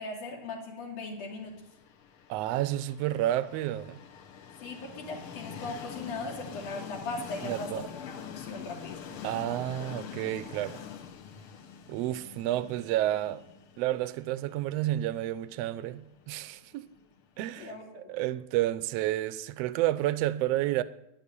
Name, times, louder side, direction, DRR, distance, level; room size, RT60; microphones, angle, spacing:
voice 1, 0.0-1.6 4.6-7.7 8.3-9.2 17.6-18.1, left 3 dB, 90° left, 4.1 m, -39 dB
Train, 1.7-17.5, left 7 dB, 60° left, 1.5 m, -45 dB
voice 2, 2.3-4.0 7.4-7.9 9.2-10.8 11.9-13.4 13.8-16.8 17.4-20.8, right 14 dB, 75° right, 1.5 m, -30 dB
11.0 x 10.0 x 9.8 m
omnidirectional pair, 3.4 m